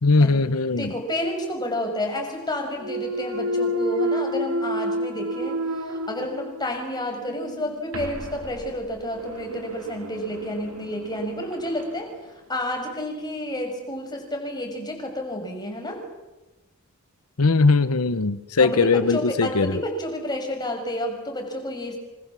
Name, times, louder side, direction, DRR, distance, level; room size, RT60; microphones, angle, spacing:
voice 1, 0.0-0.9 17.4-19.8, left 3 dB, 90° left, 13 dB, 1.0 m, -20 dB
voice 2, 0.8-12.1 12.5-16.0 18.6-22.0, left 1 dB, 20° left, 2 dB, 6.5 m, -30 dB
Thump thud, 2.8-6.8 7.3-11.9, equal, 85° right, 2.1 m, -30 dB
27.0 x 26.5 x 7.6 m, 1.1 s
head